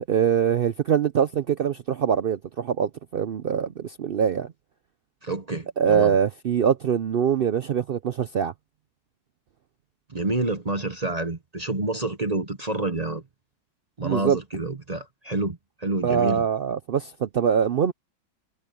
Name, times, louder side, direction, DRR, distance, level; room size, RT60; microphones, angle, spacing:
voice 1, 0.1-4.5 5.8-8.5 14.0-14.4 16.0-17.9, right 8 dB, 75° right, 0.5 m, -23 dB
voice 2, 5.2-6.1 10.1-13.2 14.0-16.4, right 2 dB, 30° right, 1.0 m, -28 dB
omnidirectional pair, 1.7 m